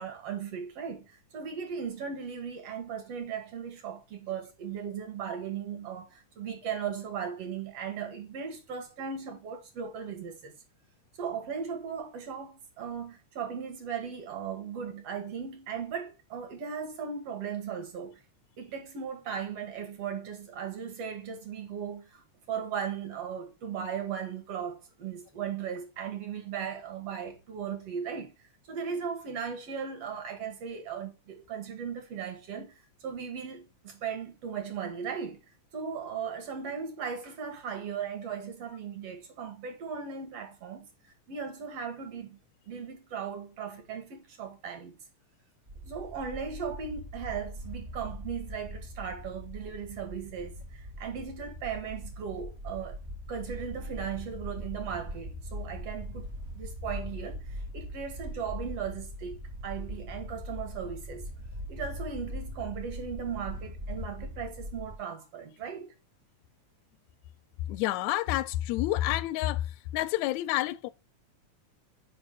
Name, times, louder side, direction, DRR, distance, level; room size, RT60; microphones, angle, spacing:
voice 1, 0.0-10.5 11.2-18.2 18.6-28.3 28.7-32.8 33.0-35.4 35.7-40.9 41.3-42.4 42.7-45.0 45.8-53.0 53.3-56.3 56.5-61.3 61.7-65.9, right 7 dB, 55° right, 2.3 m, -37 dB
sound 1, 45.7-65.0, equal, 30° right, 1.3 m, -41 dB
voice 2, 67.7-69.6 69.9-70.9, left 15 dB, 80° left, 1.7 m, -28 dB
5.3 x 5.0 x 5.0 m
omnidirectional pair, 3.5 m